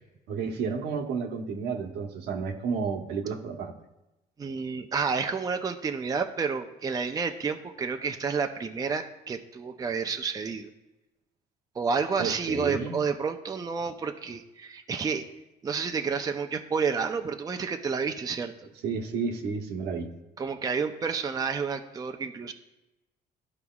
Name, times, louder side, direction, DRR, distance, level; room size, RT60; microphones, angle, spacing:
voice 1, 0.3-3.7 12.2-13.0 18.8-20.1, right 5 dB, 80° right, 4 dB, 1.0 m, -31 dB
voice 2, 4.4-10.7 11.8-15.2 15.6-18.5 20.4-22.5, right 5 dB, 20° right, 6 dB, 0.5 m, -30 dB
12.5 x 4.8 x 2.3 m, 0.97 s
cardioid pair, 110°, 17 cm